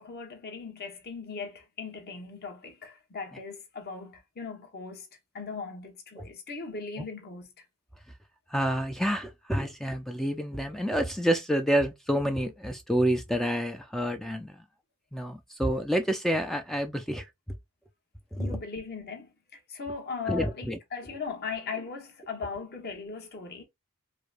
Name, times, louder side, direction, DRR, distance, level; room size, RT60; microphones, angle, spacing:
voice 1, 0.0-5.1 5.3-7.6 18.4-23.6, left 5 dB, 45° left, 1.1 m, -38 dB
voice 2, 8.5-14.5 15.1-17.3 18.3-18.6 20.3-20.8, equal, ahead, 0.3 m, -28 dB
4.7 x 2.1 x 2.4 m
head